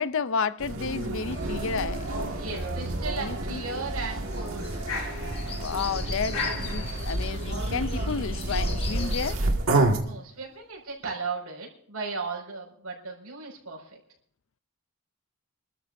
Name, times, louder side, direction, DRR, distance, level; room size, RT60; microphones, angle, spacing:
voice 1, 0.0-2.1 3.2-3.6 5.5-9.4, left 5 dB, 60° left, 0.5 m, -31 dB
sound 1, 0.6-10.0, right 2 dB, 60° right, 2.0 m, -29 dB
sound 2, 1.3-10.4, left 3 dB, 85° left, 6.2 m, -41 dB
sound 3, 1.3-9.3, left 4 dB, 25° left, 1.4 m, -42 dB
voice 2, 2.4-4.8 10.0-14.0, right 4 dB, 75° right, 5.6 m, -36 dB
27.0 x 13.5 x 2.7 m
head